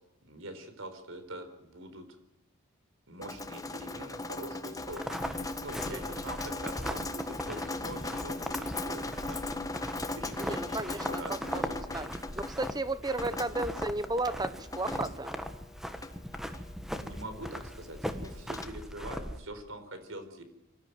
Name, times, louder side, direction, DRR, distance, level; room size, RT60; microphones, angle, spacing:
voice 1, 0.2-2.1 3.1-9.9 10.1-12.1 13.3-13.4 16.4-20.4, right 1 dB, 70° right, 9 dB, 4.3 m, -44 dB
Drip, 3.2-18.6, left 2 dB, 15° left, 1.3 m, -39 dB
sound 1, 4.9-19.4, equal, ahead, 1.5 m, -39 dB
voice 2, 5.9-6.2 10.4-12.1 12.3-15.5, right 2 dB, 20° right, 14 dB, 1.1 m, -34 dB
24.5 x 14.0 x 9.4 m, 0.91 s
head